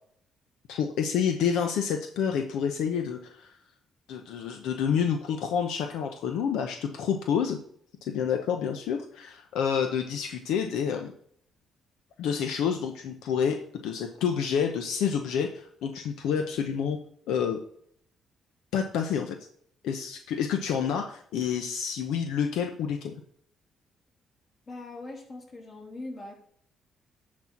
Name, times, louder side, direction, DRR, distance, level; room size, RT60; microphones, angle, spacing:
voice 1, 0.7-3.5 4.1-7.6 8.0-11.1 12.2-17.0 17.3-17.6 18.7-19.4 19.8-23.1, left 7 dB, 90° left, 6 dB, 0.8 m, -28 dB
voice 2, 24.7-26.4, left 2 dB, 40° left, -1 dB, 3.4 m, -41 dB
10.5 x 4.4 x 5.8 m, 0.64 s
cardioid pair, 90°, 0 cm